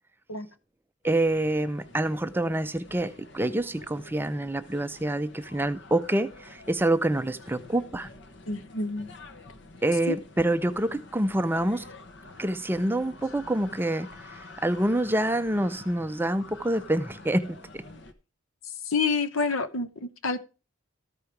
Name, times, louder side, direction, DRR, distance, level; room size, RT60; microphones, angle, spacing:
sound 1, 1.0-18.1, left 2 dB, 55° left, 1.1 m, -48 dB
voice 1, 1.0-8.1 9.8-11.8 12.4-17.6, right 1 dB, 10° right, 0.4 m, -27 dB
voice 2, 8.5-9.1 10.1-10.2 18.9-20.4, left 4 dB, 80° left, 1.0 m, -28 dB
13.5 x 5.1 x 4.6 m
head